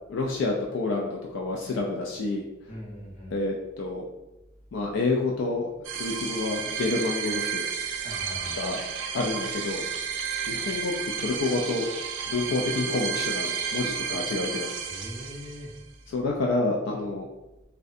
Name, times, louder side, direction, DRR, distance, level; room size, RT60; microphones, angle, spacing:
voice 1, 0.1-2.4 3.3-4.0 4.7-7.7 8.5-8.8 9.1-9.8 10.5-10.9 11.2-11.9 12.3-14.7 16.1-17.3, left 3 dB, 70° left, -1 dB, 0.3 m, -28 dB
voice 2, 2.7-3.4 8.0-8.7 14.8-15.7, equal, 40° left, -4 dB, 0.7 m, -40 dB
sound 1, 5.8-15.8, right 7 dB, 75° right, 0.3 m, -32 dB
2.6 x 2.1 x 2.4 m, 0.97 s
head